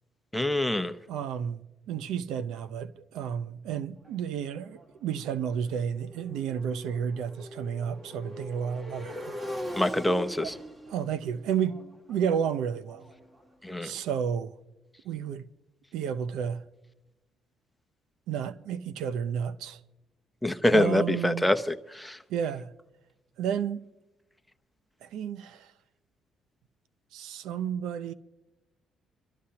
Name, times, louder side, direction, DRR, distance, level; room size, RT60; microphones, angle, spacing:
voice 1, 0.3-0.9 9.8-10.5 13.6-13.9 20.4-21.6 21.9-22.2, left 1 dB, 5° left, 0.8 m, -25 dB
voice 2, 1.1-9.3 10.4-10.5 10.9-11.8 12.1-13.0 13.8-14.5 15.0-15.5 15.9-16.6 18.3-19.8 20.7-21.5 22.3-22.7 23.4-23.8 25.0-25.7 27.1-28.1, right 8 dB, 85° right, 0.6 m, -31 dB
Motorcycle, 4.0-13.9, equal, 25° right, 2.2 m, -43 dB
24.5 x 12.5 x 2.8 m
cardioid pair, 85°, 0 cm